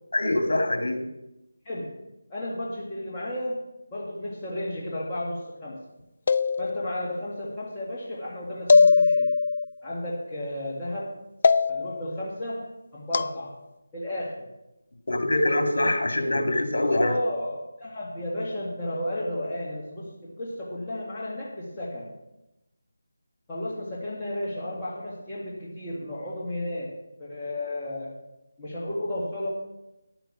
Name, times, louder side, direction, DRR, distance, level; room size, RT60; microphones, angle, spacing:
voice 1, 0.1-1.1 15.1-17.1, left 1 dB, 65° left, 5 dB, 2.2 m, -24 dB
voice 2, 1.6-2.0 2.3-3.6 3.9-5.8 6.6-9.4 9.8-11.2 11.7-13.6 13.9-14.5 16.9-22.1 23.5-28.2 28.6-29.5, left 1 dB, 15° left, -8 dB, 2.1 m, -33 dB
sound 1, 6.3-7.1 8.7-9.6 11.4-12.1 13.1-13.4, left 4 dB, 45° left, 0.4 m, -20 dB
10.5 x 9.0 x 6.2 m, 0.94 s
figure-of-eight pair, 160°, 0 cm